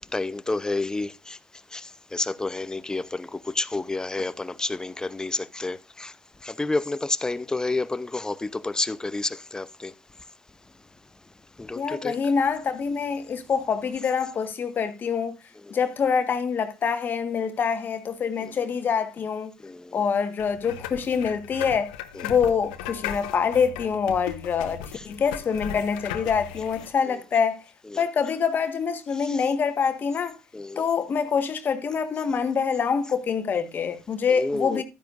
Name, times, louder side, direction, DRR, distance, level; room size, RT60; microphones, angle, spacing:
voice 1, 0.1-1.4 1.7-6.1 6.4-9.9 11.6-12.2 18.4-18.5 19.6-20.0 27.9-28.0 30.5-30.8 34.3-34.8, left 2 dB, 15° left, 0.8 m, -30 dB
voice 2, 11.7-15.4 15.7-19.5 19.9-21.9 22.2-27.6 28.0-30.3 30.8-34.8, left 6 dB, 45° left, 1.6 m, -25 dB
sound 1, 20.4-26.9, left 10 dB, 85° left, 1.1 m, -37 dB
12.5 x 10.0 x 2.6 m
supercardioid pair, 70°, 5 cm